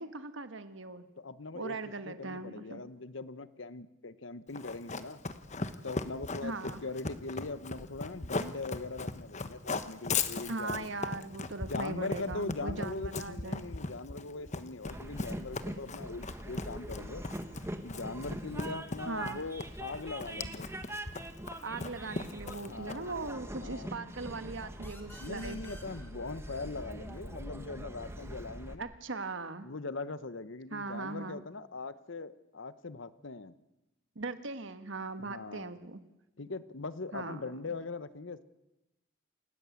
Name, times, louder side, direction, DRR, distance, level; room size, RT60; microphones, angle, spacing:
voice 1, 0.0-1.1 1.5-2.8 6.4-6.8 10.5-13.6 19.1-19.4 21.6-25.6 28.8-29.7 30.7-31.4 34.1-36.0 37.1-37.4, right 3 dB, 70° right, 9 dB, 1.5 m, -39 dB
voice 2, 1.2-1.8 2.0-5.2 5.8-6.5 6.8-10.9 11.7-17.3 17.8-20.7 22.6-23.2 23.6-23.9 25.2-28.9 29.6-33.6 35.2-35.7 36.4-38.4, left 3 dB, 70° left, 14 dB, 1.0 m, -41 dB
Run, 4.5-23.2, left 3 dB, 35° left, 1.2 m, -38 dB
Train, 14.9-28.7, right 1 dB, 15° right, 1.6 m, -43 dB
sound 1, 24.8-28.2, left 1 dB, 10° left, 3.1 m, -55 dB
28.5 x 16.5 x 8.4 m, 0.97 s
head